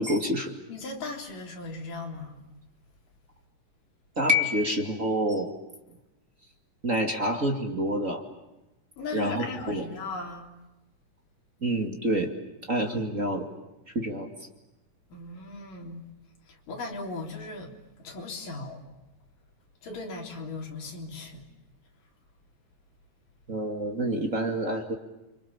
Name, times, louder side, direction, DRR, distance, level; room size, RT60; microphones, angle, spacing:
voice 1, 0.0-0.5 4.2-5.5 6.8-8.2 9.1-9.8 11.6-12.3 12.7-13.5 13.9-14.3 23.5-24.9, equal, 25° right, 2.3 m, -27 dB
voice 2, 0.7-2.4 9.0-10.5 15.1-16.0 16.5-17.7 18.0-18.8 19.8-21.4, left 3 dB, 75° left, 5.4 m, -37 dB
29.5 x 25.5 x 7.2 m
omnidirectional pair, 3.8 m